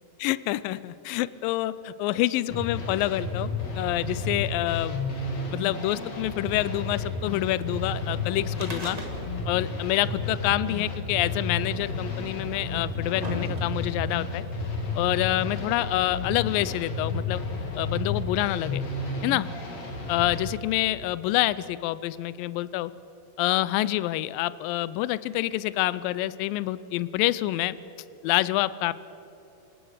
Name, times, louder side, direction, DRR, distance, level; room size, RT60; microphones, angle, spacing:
voice 1, 0.2-3.5 3.8-5.0 5.5-9.0 9.5-14.4 15.0-17.4 17.8-18.8 19.2-19.5 20.1-22.9 23.4-27.8 28.2-28.9, left 16 dB, 85° left, 17 dB, 2.3 m, -27 dB
sound 1, 2.5-20.4, left 3 dB, 50° left, 3.6 m, -32 dB
sound 2, 8.6-9.6 9.8-9.9 10.9-11.0 11.9-12.0 12.7-14.0 14.9-15.0, right 1 dB, 15° right, 1.3 m, -37 dB
27.0 x 18.0 x 6.6 m, 2.9 s
omnidirectional pair, 4.1 m